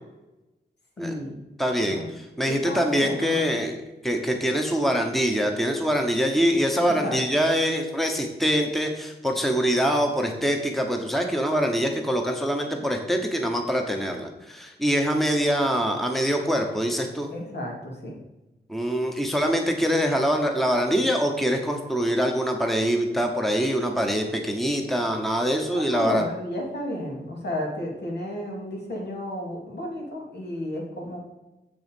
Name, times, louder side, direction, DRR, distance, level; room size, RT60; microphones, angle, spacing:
voice 1, 1.0-1.4 1.8-2.1 2.5-3.5 6.8-7.2 17.3-18.2 25.7-31.2, left 1 dB, 70° left, -1 dB, 2.8 m, -32 dB
voice 2, 1.6-3.8 4.0-17.3 18.7-26.3, equal, ahead, 3 dB, 1.0 m, -24 dB
7.8 x 6.9 x 5.3 m, 1.0 s
wide cardioid pair, 140°, 18 cm